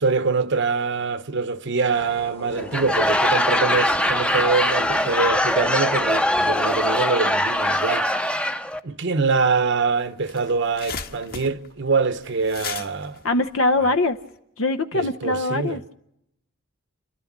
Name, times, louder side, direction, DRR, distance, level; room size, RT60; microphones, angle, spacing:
voice 1, 0.0-8.1 8.8-13.2 13.8-13.9 14.9-15.8, right 4 dB, 60° right, 1.0 m, -24 dB
sound 1, 1.9-7.0, left 2 dB, 30° left, 1.2 m, -38 dB
Laughter / Crowd, 2.6-8.8, left 1 dB, 5° left, 0.7 m, -22 dB
sound 2, 9.7-9.8 10.0-14.3, left 6 dB, 50° left, 1.5 m, -36 dB
voice 2, 13.2-14.2 14.6-15.8, left 2 dB, 75° left, 0.8 m, -22 dB
30.0 x 12.0 x 7.4 m
head